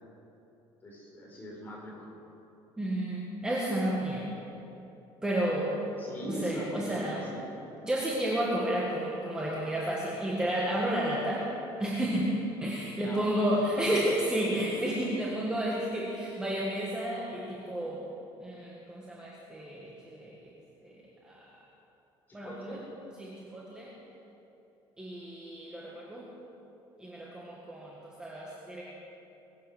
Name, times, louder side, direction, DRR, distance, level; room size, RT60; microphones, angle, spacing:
voice 1, 0.8-2.1 6.0-7.4 12.8-13.8 22.3-22.8, equal, 20° left, -3 dB, 4.4 m, -41 dB
voice 2, 2.8-4.3 5.2-5.8 6.3-7.2 7.8-11.5 11.8-18.0 18.4-20.5 20.8-20.9 21.2-21.4 22.3-22.8 23.2-23.9 25.0-26.3 27.0-28.8, right 1 dB, 10° right, -5 dB, 1.6 m, -31 dB
21.5 x 9.2 x 6.2 m, 2.9 s
cardioid pair, 165°, 10 cm